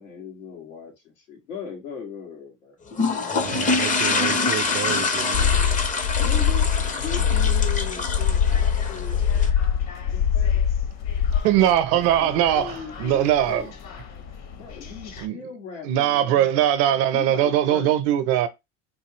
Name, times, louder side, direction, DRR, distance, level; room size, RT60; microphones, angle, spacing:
voice 1, 0.0-2.8 6.2-9.2 10.0-10.6 11.9-13.7 14.5-16.7 17.1-17.9, left 6 dB, 90° left, 2.0 m, -38 dB
sound 1, 2.9-9.5, left 4 dB, 20° left, 0.6 m, -25 dB
voice 2, 3.3-5.5, right 12 dB, 35° right, 0.5 m, -32 dB
sound 2, 5.3-11.4, left 7 dB, 70° left, 0.7 m, -22 dB
sound 3, 7.8-15.3, left 6 dB, 45° left, 1.0 m, -40 dB
voice 3, 11.4-13.7 15.2-15.4 15.8-18.5, right 11 dB, 60° right, 0.8 m, -20 dB
4.1 x 2.6 x 3.0 m
hypercardioid pair, 90°, 37 cm